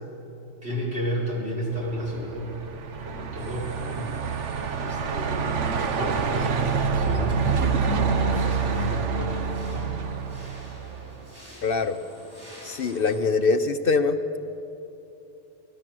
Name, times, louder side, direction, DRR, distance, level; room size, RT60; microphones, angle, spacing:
voice 1, 0.6-2.5 3.0-9.9, equal, 60° right, -4 dB, 5.9 m, -33 dB
Truck, 1.8-11.2, right 5 dB, 85° right, 1.4 m, -27 dB
sound 1, 3.4-13.2, equal, 10° right, 6.2 m, -47 dB
voice 2, 11.6-12.0 12.6-14.2, left 4 dB, 55° left, 9 dB, 0.9 m, -23 dB
25.0 x 17.5 x 7.7 m, 3.0 s
omnidirectional pair, 1.2 m